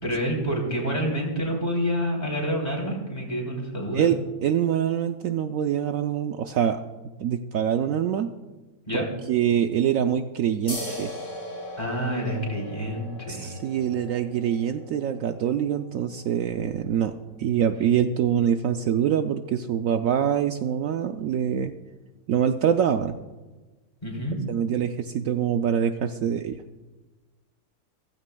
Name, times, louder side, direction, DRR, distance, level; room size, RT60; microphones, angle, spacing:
voice 1, 0.0-4.1 8.9-9.1 11.8-13.6 24.0-24.4, equal, 25° left, -2 dB, 3.5 m, -28 dB
voice 2, 3.9-6.8 7.2-8.3 9.3-11.1 13.3-17.1 17.4-21.7 22.3-23.2 24.5-26.6, right 9 dB, 70° right, 7 dB, 0.9 m, -25 dB
sound 1, 10.7-17.8, equal, 55° left, 4.4 m, -40 dB
16.0 x 15.0 x 2.3 m, 1.2 s
omnidirectional pair, 1.6 m